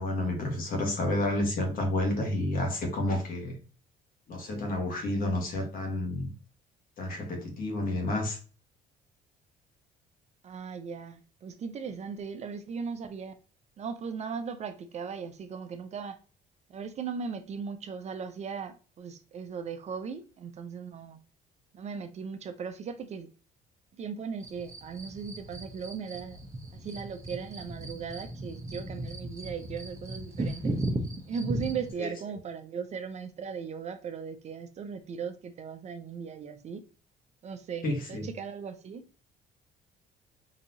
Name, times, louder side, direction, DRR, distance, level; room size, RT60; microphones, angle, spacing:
voice 1, 0.0-3.6 4.3-6.3 7.0-8.4 32.0-32.1 37.8-38.3, left 1 dB, 60° left, 1.4 m, -30 dB
voice 2, 10.4-13.3 13.8-16.2 16.7-21.2 21.7-23.3 24.0-26.4 26.7-30.8 31.3-36.8 37.4-39.0, right 6 dB, 40° right, 0.5 m, -38 dB
sound 1, 24.4-31.9, right 1 dB, 20° right, 0.8 m, -36 dB
4.0 x 2.7 x 2.7 m
cardioid pair, 110°, 17 cm